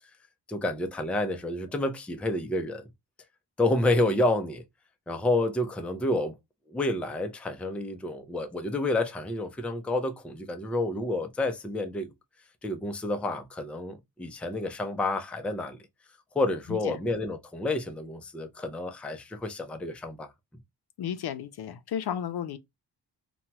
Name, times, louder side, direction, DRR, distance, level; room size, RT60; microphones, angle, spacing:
voice 1, 0.5-2.9 3.6-4.6 5.1-6.4 6.7-12.1 12.6-15.8 16.3-20.3, left 2 dB, 5° left, 0.4 m, -29 dB
voice 2, 21.0-22.6, left 9 dB, 65° left, 0.5 m, -33 dB
2.9 x 2.2 x 2.8 m
wide cardioid pair, 100°, 42 cm